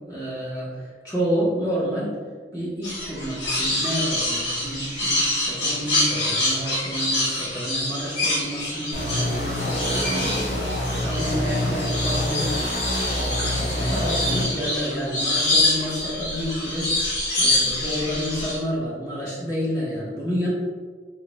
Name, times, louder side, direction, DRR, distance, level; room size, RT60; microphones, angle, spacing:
voice 1, 0.1-2.2 2.5-16.9 17.4-20.5, equal, 20° left, -7 dB, 1.1 m, -29 dB
sound 1, 2.8-18.6, left 1 dB, 70° left, 1.5 m, -26 dB
sound 2, 8.9-14.4, left 1 dB, 40° left, 0.8 m, -26 dB
3.8 x 2.0 x 3.1 m, 1.5 s
head